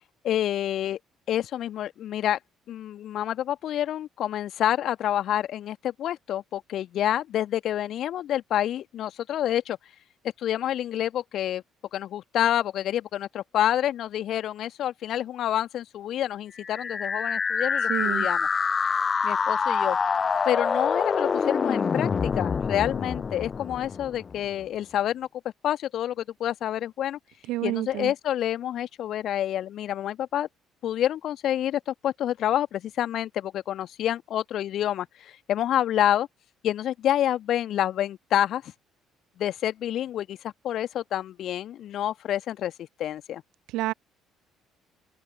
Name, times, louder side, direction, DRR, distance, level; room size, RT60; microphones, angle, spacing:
voice 1, 0.2-1.0 1.3-2.4 2.7-9.8 10.4-11.6 11.9-18.5 19.2-20.0 20.5-25.3 25.6-27.2 27.6-30.5 30.8-36.3 36.6-38.7 39.4-43.4, left 11 dB, 55° left, 1.8 m, -28 dB
sound 1, 16.6-24.5, left 6 dB, 35° left, 0.4 m, -26 dB
voice 2, 17.9-18.3 27.5-28.1 43.7-43.9, right 17 dB, 60° right, 0.9 m, -29 dB
open air
figure-of-eight pair, 50°, 0 cm